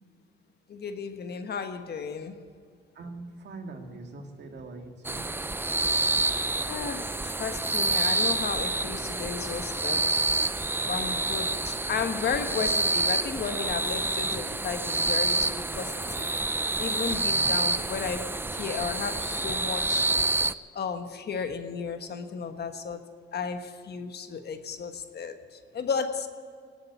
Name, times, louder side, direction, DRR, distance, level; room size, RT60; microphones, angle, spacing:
voice 1, 0.7-2.5 6.7-10.2 10.8-16.3 16.8-20.2 20.7-26.3, left 6 dB, 55° left, 8 dB, 1.3 m, -34 dB
voice 2, 2.9-5.4 17.2-17.6, right 2 dB, 60° right, 3 dB, 2.2 m, -42 dB
sound 1, 5.0-20.5, right 2 dB, 10° right, 0.5 m, -28 dB
19.0 x 7.9 x 8.3 m, 2.2 s
cardioid pair, 90°, 20 cm